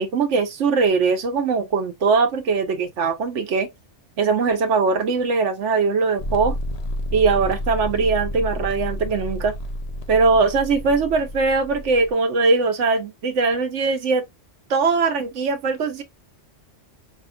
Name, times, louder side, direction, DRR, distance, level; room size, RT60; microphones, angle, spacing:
voice 1, 0.0-3.7 4.2-6.6 7.1-9.5 10.1-14.2 14.7-16.0, right 4 dB, 80° right, 1.1 m, -21 dB
sound 1, 6.2-12.1, left 1 dB, 45° left, 0.5 m, -30 dB
5.5 x 2.4 x 2.4 m
omnidirectional pair, 1.2 m